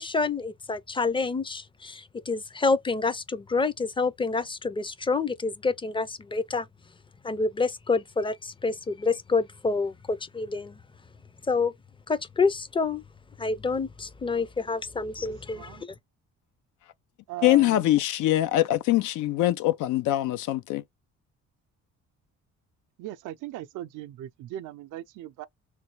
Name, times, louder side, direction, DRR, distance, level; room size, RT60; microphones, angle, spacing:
voice 1, 0.0-6.7 7.2-10.8 11.5-11.7 12.1-13.0 13.4-15.9, left 4 dB, 15° left, 0.5 m, -28 dB
voice 2, 15.2-15.8 17.3-17.9 23.0-25.5, right 14 dB, 80° right, 0.5 m, -39 dB
voice 3, 17.4-20.8, left 15 dB, 80° left, 0.5 m, -23 dB
3.2 x 2.2 x 3.0 m
cardioid pair, 90°, 30 cm